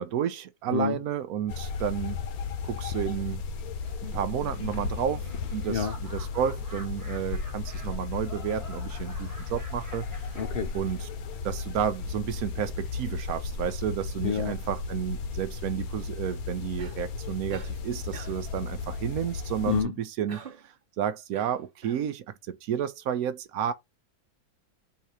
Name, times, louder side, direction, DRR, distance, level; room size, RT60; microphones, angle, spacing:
voice 1, 0.0-2.2 2.6-3.4 4.1-10.3 10.7-11.1 11.4-23.7, right 9 dB, 75° right, 1.0 m, -31 dB
sound 1, 1.5-19.8, left 4 dB, 70° left, 1.2 m, -35 dB
Laughter, 3.8-11.3, equal, 15° right, 1.2 m, -48 dB
voice 2, 10.4-10.8 14.2-14.6 19.6-20.0, left 7 dB, 85° left, 0.5 m, -28 dB
Cough, 16.8-17.1 17.5-17.8 18.1-18.5 20.3-20.7 21.3-22.1, right 5 dB, 45° right, 0.8 m, -46 dB
4.0 x 2.8 x 4.7 m
omnidirectional pair, 1.6 m